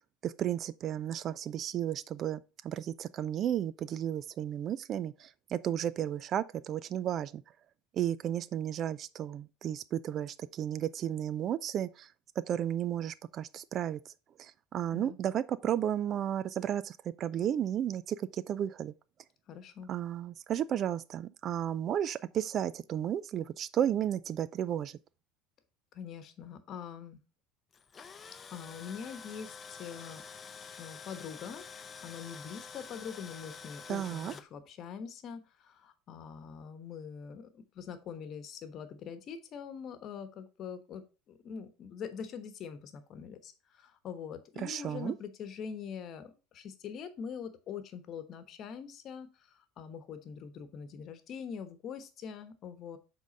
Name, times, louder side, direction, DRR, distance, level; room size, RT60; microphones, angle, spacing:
voice 1, 0.2-7.4 8.0-12.1 12.5-14.0 14.4-18.9 19.9-24.9 33.9-34.3 44.6-45.1, right 10 dB, 45° right, 0.4 m, -33 dB
voice 2, 19.5-19.9 25.9-27.2 28.5-30.2 30.8-31.6 32.0-53.0, left 7 dB, 50° left, 1.1 m, -44 dB
Tools, 27.7-34.4, left 5 dB, 30° left, 0.6 m, -48 dB
7.3 x 3.8 x 4.0 m
hypercardioid pair, 90°, 0 cm